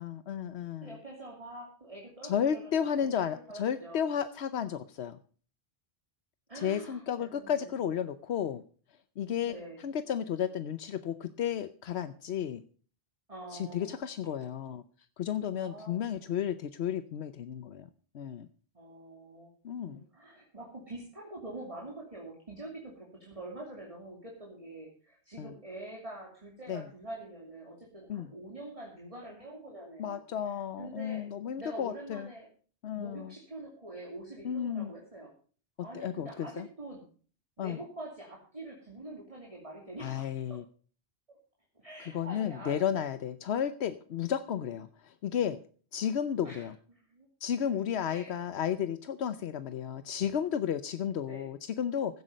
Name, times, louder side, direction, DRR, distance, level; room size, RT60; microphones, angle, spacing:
voice 1, 0.0-1.0 2.2-5.2 6.5-8.6 9.2-12.6 13.5-14.8 15.2-17.9 18.1-18.5 19.6-20.0 25.4-25.5 26.7-26.9 28.1-28.3 30.0-32.3 32.8-33.3 34.4-34.9 35.9-36.7 37.6-37.8 40.0-40.6 42.0-45.6 45.9-46.7 47.4-52.2, left 8 dB, 80° left, 12 dB, 1.0 m, -33 dB
voice 2, 0.8-4.1 6.5-7.7 9.4-9.8 13.3-14.0 15.6-16.2 18.7-19.5 19.9-30.2 30.8-31.3 31.6-32.5 33.0-35.3 35.8-37.0 37.6-40.3 41.7-42.8 46.4-46.7 47.1-47.3 48.1-48.3 51.2-51.5, right 2 dB, 30° right, -2 dB, 2.8 m, -45 dB
15.5 x 8.3 x 5.2 m, 0.41 s
omnidirectional pair, 1.1 m